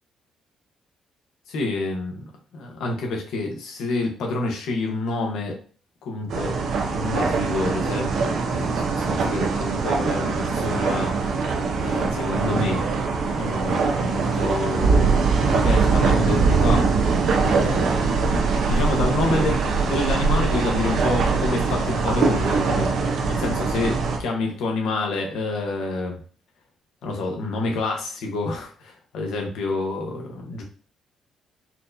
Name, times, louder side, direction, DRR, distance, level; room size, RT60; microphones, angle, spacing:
voice 1, 1.5-2.3 2.5-5.6 6.0-6.6 6.9-11.4 11.8-12.8 13.3-17.1 17.4-22.9 23.3-26.2 27.0-30.6, left 2 dB, 85° left, 1 dB, 1.0 m, -28 dB
sound 1, 6.3-24.2, right 4 dB, 70° right, 0.6 m, -22 dB
4.3 x 2.2 x 2.6 m, 0.40 s
cardioid pair, 90°, 0 cm